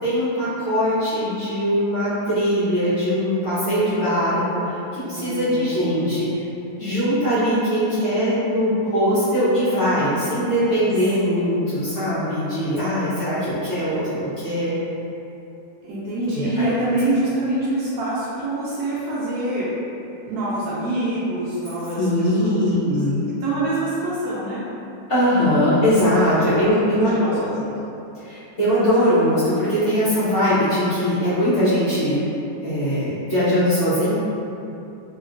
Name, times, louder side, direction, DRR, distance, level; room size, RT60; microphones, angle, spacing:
voice 1, 0.0-6.3 6.8-14.7 16.3-16.5 21.9-23.2 25.1-27.4 28.2-32.3 32.6-34.1, equal, 45° left, -14 dB, 1.0 m, -21 dB
voice 2, 5.1-6.2 11.2-11.9 13.0-13.1 15.8-19.7 20.3-23.0 23.4-24.6 26.6-27.6, right 1 dB, 70° right, -9 dB, 1.0 m, -26 dB
3.0 x 2.8 x 2.5 m, 2.8 s
omnidirectional pair, 2.0 m